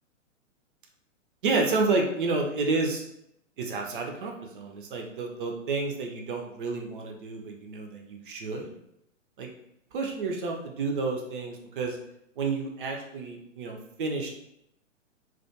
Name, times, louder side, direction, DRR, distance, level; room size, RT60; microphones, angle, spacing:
voice 1, 1.4-3.0 3.6-8.7 9.4-9.5 9.9-12.0 12.4-14.3, right 3 dB, 45° right, 1 dB, 0.4 m, -30 dB
2.3 x 2.2 x 2.6 m, 0.78 s
figure-of-eight pair, 115°, 39 cm